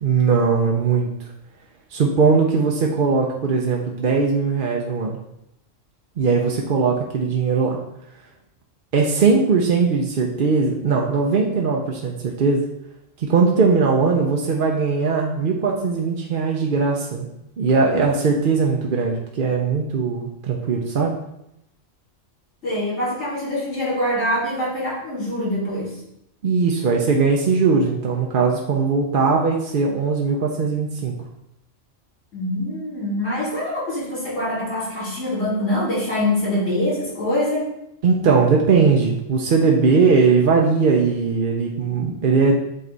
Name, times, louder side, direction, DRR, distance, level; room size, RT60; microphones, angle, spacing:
voice 1, 0.0-1.3 1.9-5.2 6.2-7.8 8.9-12.7 13.2-17.3 17.6-21.1 26.4-31.1 38.0-42.6, right 4 dB, 50° right, 0 dB, 0.7 m, -19 dB
voice 2, 22.6-25.9 32.3-37.7, left 1 dB, 65° left, -9 dB, 3.1 m, -24 dB
7.8 x 3.2 x 3.9 m, 0.81 s
omnidirectional pair, 1.3 m